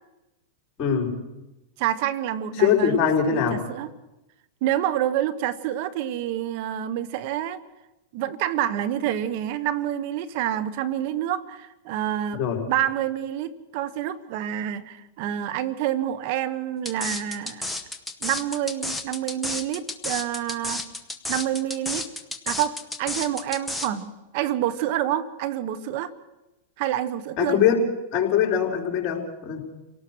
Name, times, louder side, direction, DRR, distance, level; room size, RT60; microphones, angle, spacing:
voice 1, 0.8-1.2 2.6-3.6 12.4-12.6 27.4-27.8 28.1-29.6, left 7 dB, 40° left, 2 dB, 5.6 m, -22 dB
voice 2, 1.8-3.0 3.3-3.9 4.6-7.6 8.1-12.4 12.7-17.8 18.2-20.8 21.3-22.0 22.5-26.1 26.8-27.6, right 11 dB, 55° right, 14 dB, 1.3 m, -28 dB
sound 1, 16.9-23.9, left 2 dB, 5° left, 1.9 m, -31 dB
29.0 x 18.0 x 6.4 m, 1.0 s
hypercardioid pair, 120°, 0 cm